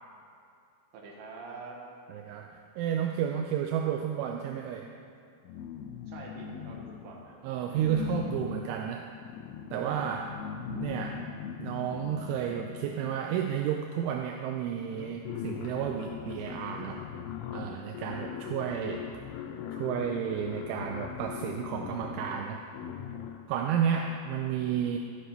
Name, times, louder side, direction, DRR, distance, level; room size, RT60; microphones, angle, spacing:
voice 1, 0.9-1.8 6.1-7.4 23.9-24.0, right 4 dB, 70° right, -2 dB, 3.4 m, -45 dB
voice 2, 2.1-4.9 7.4-9.1 9.7-10.4 10.7-17.0 17.5-19.1 19.7-22.6 23.5-25.0, right 9 dB, 85° right, 3 dB, 3.0 m, -32 dB
sound 1, 5.4-7.3 7.7-13.4 14.3-14.4 14.7-23.6, left 8 dB, 90° left, 3.1 m, -40 dB
14.0 x 8.2 x 4.3 m, 2.5 s
omnidirectional pair, 5.4 m